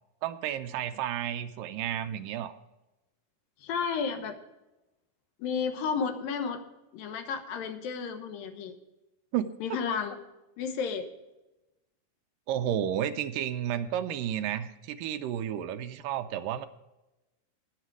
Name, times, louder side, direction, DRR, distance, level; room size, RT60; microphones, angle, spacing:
voice 1, 0.2-2.6 9.3-9.8 12.5-16.7, right 10 dB, 80° right, 10 dB, 2.2 m, -32 dB
voice 2, 3.6-4.4 5.4-6.6 6.9-8.8 9.6-10.2 10.6-11.1, left 6 dB, 75° left, 7 dB, 2.9 m, -32 dB
19.5 x 6.7 x 4.7 m, 0.98 s
omnidirectional pair, 4.1 m